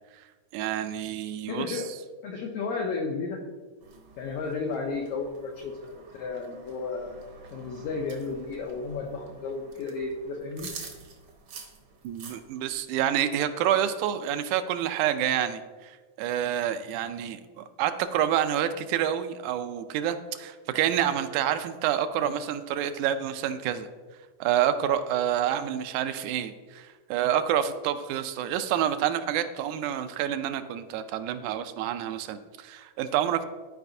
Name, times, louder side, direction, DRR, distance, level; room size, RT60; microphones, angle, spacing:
voice 1, 0.5-1.8 12.0-23.9 24.4-33.5, right 10 dB, 85° right, 10 dB, 2.0 m, -28 dB
voice 2, 1.5-1.9 2.2-3.4 4.2-7.2 7.5-10.7, left 4 dB, 85° left, 1 dB, 1.3 m, -33 dB
sound 1, 3.8-12.8, right 5 dB, 65° right, 1.3 m, -48 dB
12.5 x 4.9 x 2.6 m, 1.4 s
omnidirectional pair, 3.5 m